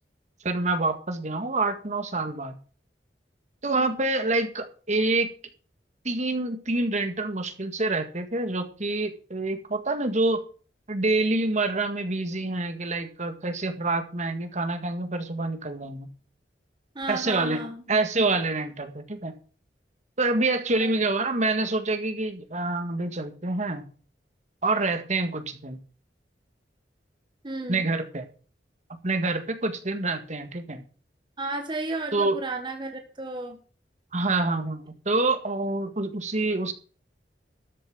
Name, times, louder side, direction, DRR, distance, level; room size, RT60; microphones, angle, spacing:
voice 1, 0.4-2.6 3.6-5.3 6.0-10.4 10.9-16.1 17.1-17.6 17.9-19.3 20.2-23.8 24.6-25.8 27.7-28.3 28.9-30.8 32.1-32.4 34.1-36.7, right 2 dB, 45° right, 8 dB, 1.8 m, -27 dB
voice 2, 16.9-18.0 20.8-20.9 27.4-27.8 31.4-33.6, right 2 dB, 25° right, 4 dB, 1.5 m, -33 dB
13.0 x 7.4 x 6.2 m, 0.38 s
head